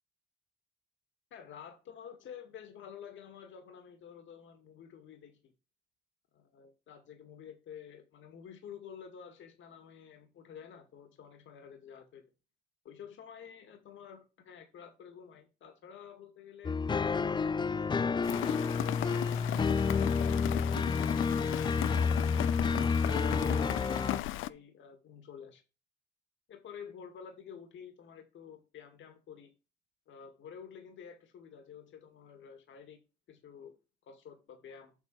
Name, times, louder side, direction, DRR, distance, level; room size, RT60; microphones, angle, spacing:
voice 1, 1.3-5.5 6.3-12.2 12.8-16.8 17.2-19.4 19.7-21.2 23.1-25.6 26.5-29.5 30.1-33.0 33.3-33.7 34.0-34.9, left 7 dB, 75° left, 6 dB, 2.2 m, -50 dB
sound 1, 16.6-24.2, left 5 dB, 25° left, 0.4 m, -29 dB
Rain, 18.2-24.5, left 15 dB, 90° left, 0.6 m, -37 dB
8.4 x 4.4 x 6.2 m, 0.29 s
cardioid pair, 90°, 20 cm